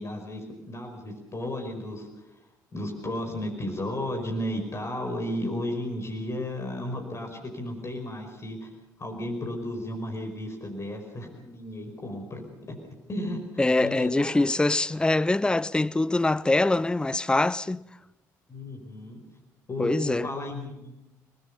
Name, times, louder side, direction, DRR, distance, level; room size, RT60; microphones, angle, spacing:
voice 1, 0.0-2.4 2.7-8.7 9.0-12.8 13.1-13.4 13.7-14.4 18.5-19.2 19.7-21.1, left 1 dB, 30° left, 5.1 m, -34 dB
voice 2, 13.6-17.8 19.8-20.3, left 2 dB, 10° left, 0.7 m, -24 dB
29.0 x 20.0 x 5.6 m
figure-of-eight pair, 45°, 9 cm